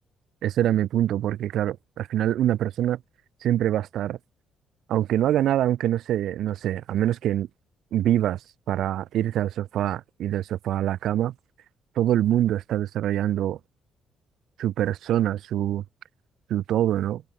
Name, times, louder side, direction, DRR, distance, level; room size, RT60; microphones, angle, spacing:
voice 1, 0.4-3.0 3.4-4.2 4.9-7.5 7.9-8.4 8.7-11.3 12.0-13.6 14.6-15.8 16.5-17.2, right 12 dB, 70° right, 4.2 m, -24 dB
hypercardioid pair, 55°, 0 cm